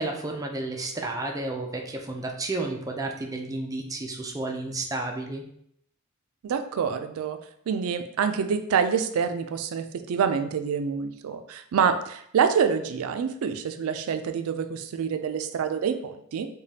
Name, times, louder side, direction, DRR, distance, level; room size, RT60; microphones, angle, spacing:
voice 1, 0.0-5.4, right 2 dB, 15° right, 2 dB, 0.4 m, -31 dB
voice 2, 6.4-7.4 7.7-16.5, right 6 dB, 80° right, 8 dB, 0.4 m, -26 dB
4.9 x 2.3 x 2.7 m, 0.71 s
head